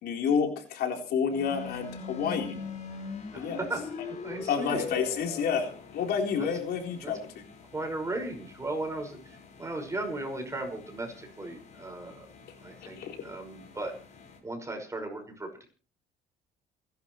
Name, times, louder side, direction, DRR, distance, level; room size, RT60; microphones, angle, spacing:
voice 1, 0.0-2.6 3.4-3.6 4.4-7.3 12.8-13.2, left 6 dB, 70° left, 3 dB, 4.0 m, -29 dB
sound 1, 1.3-14.4, left 5 dB, 45° left, 5.1 m, -44 dB
voice 2, 3.3-3.8 4.2-4.9 6.4-6.5 7.0-7.1 7.7-12.3 12.6-13.9 14.4-15.7, right 2 dB, 15° right, 4 dB, 5.5 m, -36 dB
28.0 x 11.5 x 3.2 m, 0.38 s
cardioid pair, 110°, 17 cm